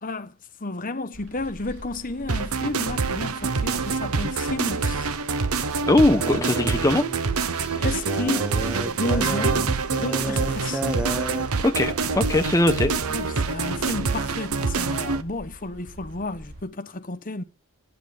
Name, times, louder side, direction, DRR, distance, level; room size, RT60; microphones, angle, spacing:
voice 1, 0.0-5.1 7.8-8.5 8.9-9.7 10.0-10.8 13.1-17.4, left 2 dB, 40° left, 1.1 m, -32 dB
sound 1, 1.1-16.6, equal, 60° right, 3.4 m, -45 dB
sound 2, 2.3-15.2, right 4 dB, 75° right, 0.8 m, -26 dB
voice 2, 5.9-7.1 11.6-12.9, left 1 dB, 15° left, 1.0 m, -20 dB
sound 3, 6.1-11.5, right 1 dB, 5° right, 0.6 m, -32 dB
11.0 x 9.0 x 5.0 m
head